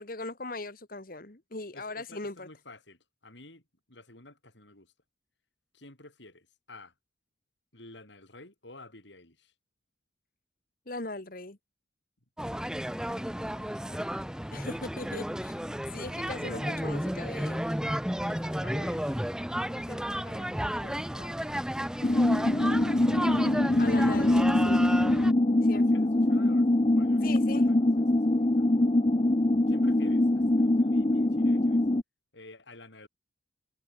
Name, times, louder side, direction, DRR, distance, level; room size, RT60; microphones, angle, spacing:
voice 1, 0.0-2.5 10.9-11.6 14.5-15.6 15.9-17.6 22.5-23.4 23.8-24.8 25.6-25.9 27.2-27.7, left 2 dB, 50° left, 1.6 m, -39 dB
voice 2, 1.7-3.6 3.9-4.9 5.7-6.9 7.7-9.5 13.0-14.4 16.4-17.4 18.2-21.6 22.6-23.5 24.2-24.5 25.7-28.7 29.7-31.8 32.3-33.1, left 2 dB, 75° left, 7.3 m, -52 dB
sound 1, 12.4-25.3, equal, 5° right, 1.2 m, -33 dB
sound 2, 22.0-32.0, left 1 dB, 30° left, 0.7 m, -23 dB
head